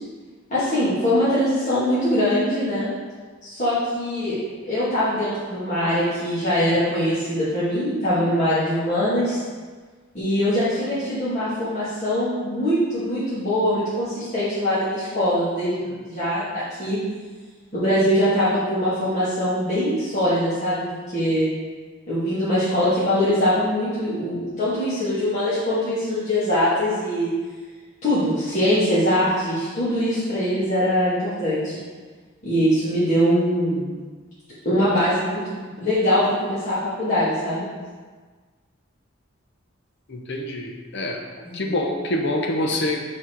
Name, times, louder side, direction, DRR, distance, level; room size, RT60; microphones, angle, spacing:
voice 1, 0.5-2.9 3.4-4.4 4.7-9.4 10.1-17.0 17.7-20.8 21.1-21.5 22.1-27.3 28.0-31.7 32.4-33.8 34.7-37.7 41.6-41.7, equal, 35° left, -13 dB, 2.1 m, -22 dB
voice 2, 40.1-43.0, left 1 dB, 55° left, 2 dB, 0.8 m, -26 dB
7.5 x 4.3 x 4.5 m, 1.4 s
head